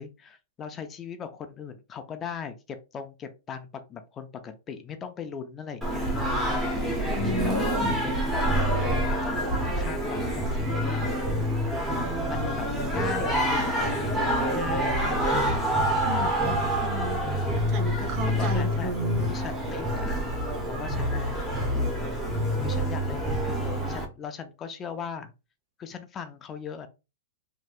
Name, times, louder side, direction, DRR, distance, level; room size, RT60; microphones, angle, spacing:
voice 1, 0.0-7.6 7.8-11.0 12.3-15.2 18.2-18.9 19.2-20.2 20.7-21.3 22.6-25.3 25.8-26.9, left 7 dB, 20° left, 8 dB, 0.4 m, -39 dB
Singing, 5.8-24.0, equal, 5° right, 0.9 m, -27 dB
voice 2, 7.1-7.9 16.0-17.2 17.7-19.3, right 1 dB, 35° right, 5 dB, 0.8 m, -33 dB
3.3 x 2.7 x 2.4 m, 0.28 s
hypercardioid pair, 145°, 0 cm